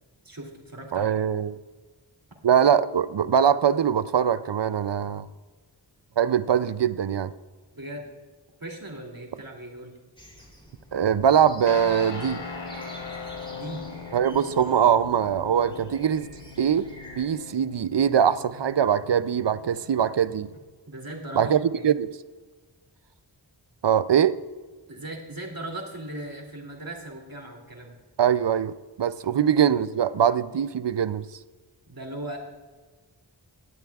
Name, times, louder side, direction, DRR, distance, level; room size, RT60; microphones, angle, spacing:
voice 1, 0.2-1.2 7.7-8.1 8.6-9.9 13.5-13.9 20.9-21.8 24.9-28.0 29.2-29.3 31.9-32.4, right 1 dB, 50° right, 0 dB, 2.8 m, -38 dB
voice 2, 0.9-1.5 2.4-5.3 6.2-7.3 10.9-12.4 14.1-16.3 16.6-16.9 17.2-20.5 21.4-22.1 23.8-24.3 28.2-28.7 29.0-31.3, right 8 dB, 70° right, 15 dB, 0.5 m, -22 dB
sound 1, 10.2-17.3, equal, 10° left, 3.2 m, -47 dB
Guitar, 11.7-20.6, left 4 dB, 70° left, 1.0 m, -40 dB
17.5 x 12.5 x 2.4 m, 1.4 s
wide cardioid pair, 45°, 44 cm